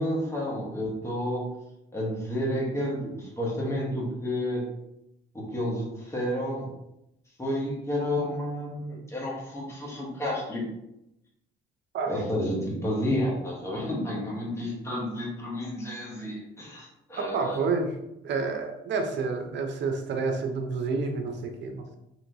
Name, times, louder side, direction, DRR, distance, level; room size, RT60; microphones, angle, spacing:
voice 1, 0.0-1.5 1.9-4.7 5.3-6.7 7.4-10.6 12.0-17.6, left 1 dB, 15° left, -3 dB, 1.2 m, -30 dB
voice 2, 17.2-17.9 18.2-22.0, right 4 dB, 65° right, 5 dB, 0.7 m, -29 dB
3.1 x 2.9 x 2.6 m, 0.82 s
cardioid pair, 90°, 20 cm